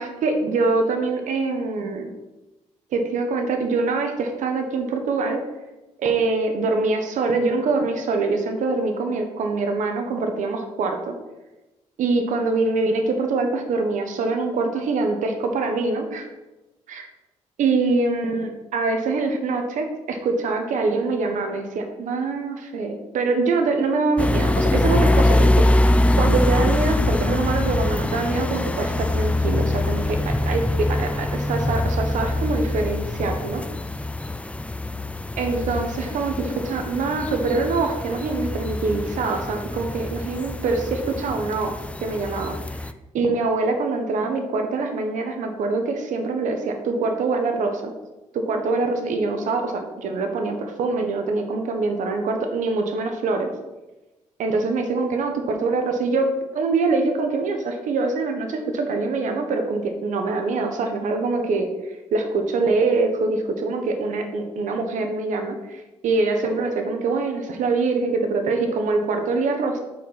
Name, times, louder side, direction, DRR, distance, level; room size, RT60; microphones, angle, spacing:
voice 1, 0.0-2.1 2.9-5.4 6.0-11.1 12.0-16.3 16.9-17.1 17.6-25.6 26.2-33.6 35.4-41.7 42.0-47.9 48.3-53.5 54.4-56.3 56.5-61.7 62.1-69.8, right 3 dB, 80° right, 5 dB, 1.2 m, -24 dB
sound 1, 24.2-42.9, left 1 dB, 10° left, 0.5 m, -23 dB
8.1 x 4.4 x 5.9 m, 1.1 s
cardioid pair, 70°, 13 cm